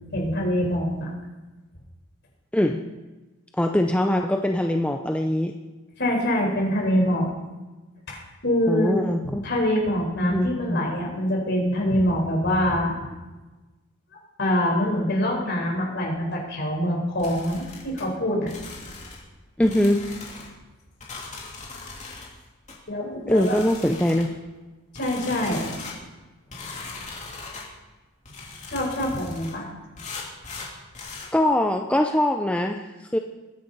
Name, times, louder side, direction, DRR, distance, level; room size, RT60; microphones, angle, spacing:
voice 1, 0.1-1.1 6.0-7.3 8.1-9.0 9.3-13.0 14.4-18.5 22.9-23.6 24.9-25.7 28.7-29.7, equal, 50° left, -1 dB, 4.5 m, -24 dB
voice 2, 3.6-5.5 8.7-9.4 10.2-10.8 19.6-20.0 23.3-24.3 31.3-33.2, left 1 dB, 5° left, 4 dB, 0.5 m, -22 dB
sound 1, 17.2-18.0 18.5-19.3 19.6-20.5 21.0-22.3 22.7-22.8 23.3-24.3 24.9-26.0 26.5-27.7 28.2-29.6 30.0-31.3, left 4 dB, 35° left, 3.0 m, -39 dB
21.5 x 10.5 x 4.1 m, 1.2 s
head